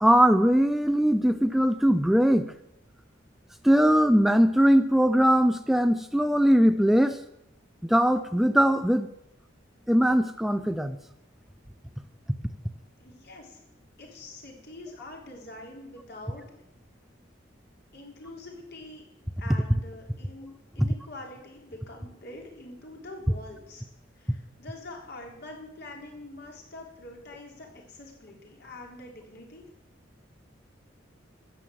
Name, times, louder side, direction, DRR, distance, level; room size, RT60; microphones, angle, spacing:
voice 1, 0.0-2.5 3.6-7.2 7.8-9.1 9.9-11.0 20.8-20.9, equal, ahead, 8 dB, 0.5 m, -21 dB
voice 2, 13.0-13.6 14.0-16.5 17.9-19.1 19.4-23.8 24.2-29.6, left 2 dB, 60° left, 1 dB, 3.6 m, -44 dB
13.0 x 9.1 x 7.7 m, 0.81 s
head